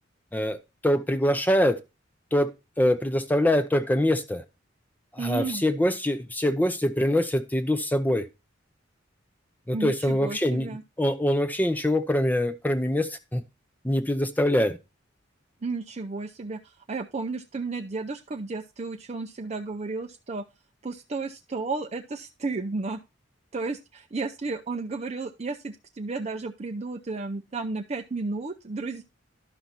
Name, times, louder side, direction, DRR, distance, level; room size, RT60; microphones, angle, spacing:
voice 1, 0.8-1.8 2.3-2.5 2.8-4.4 5.1-8.3 9.7-10.7 11.0-13.4 13.8-14.8, left 1 dB, 10° left, 0.6 m, -24 dB
voice 2, 5.2-5.6 9.7-10.8 15.6-20.5 20.8-23.0 23.5-29.0, right 3 dB, 35° right, 0.5 m, -33 dB
11.5 x 5.8 x 4.0 m
head